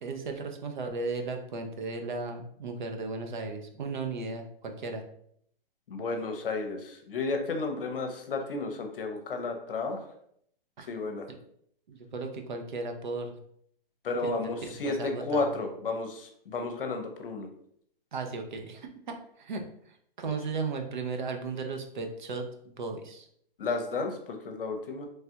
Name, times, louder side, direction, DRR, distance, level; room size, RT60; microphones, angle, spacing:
voice 1, 0.0-5.0 10.8-10.9 11.9-13.4 14.2-14.3 14.6-15.5 18.1-23.3, right 3 dB, 55° right, 5 dB, 0.5 m, -36 dB
voice 2, 5.9-10.0 10.9-11.3 14.0-17.5 23.6-25.1, left 3 dB, 65° left, 5 dB, 0.7 m, -32 dB
3.2 x 2.3 x 2.7 m, 0.68 s
hypercardioid pair, 170°, 29 cm